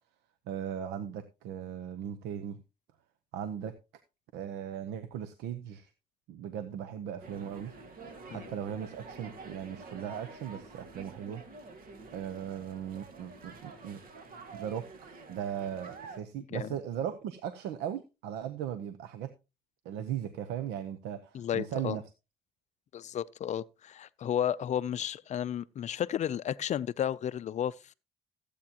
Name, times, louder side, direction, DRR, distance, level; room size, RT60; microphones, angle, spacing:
voice 1, 0.5-2.6 3.3-3.7 4.3-5.9 6.3-7.8 8.3-11.4 12.1-14.0 14.5-14.8 15.3-19.3 19.8-22.0, right 9 dB, 90° right, 0.8 m, -38 dB
sound 1, 7.2-16.2, right 3 dB, 55° right, 1.8 m, -48 dB
voice 2, 21.3-22.0 22.9-27.9, left 10 dB, 45° left, 0.5 m, -33 dB
14.5 x 8.4 x 2.9 m
cardioid pair, 110°, 17 cm